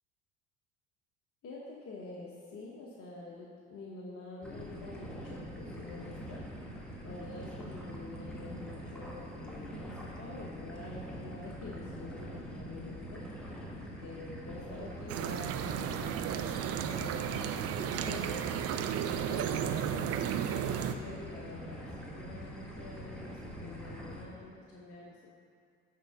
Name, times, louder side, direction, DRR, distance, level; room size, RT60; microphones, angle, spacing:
voice 1, 1.4-6.4 7.0-13.4 14.0-18.4 19.0-20.5 20.8-25.3, left 2 dB, 40° left, -4 dB, 1.1 m, -47 dB
sound 1, 4.4-24.3, equal, ahead, 1.5 m, -44 dB
sound 2, 15.1-20.9, right 9 dB, 45° right, 0.5 m, -33 dB
9.5 x 3.7 x 5.5 m, 2.4 s
hypercardioid pair, 65°, 36 cm